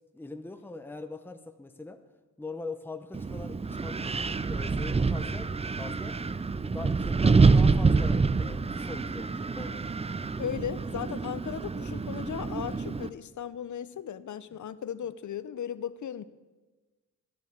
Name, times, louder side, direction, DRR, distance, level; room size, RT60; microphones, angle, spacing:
voice 1, 0.1-2.0 2.4-4.1 4.4-6.2 6.7-9.9 14.5-14.6, left 3 dB, 5° left, 8 dB, 0.8 m, -42 dB
Wind, 3.1-13.1, right 4 dB, 20° right, 0.4 m, -27 dB
voice 2, 10.4-16.2, left 9 dB, 65° left, 15 dB, 0.7 m, -36 dB
14.0 x 9.6 x 7.1 m, 1.2 s
wide cardioid pair, 100°, 31 cm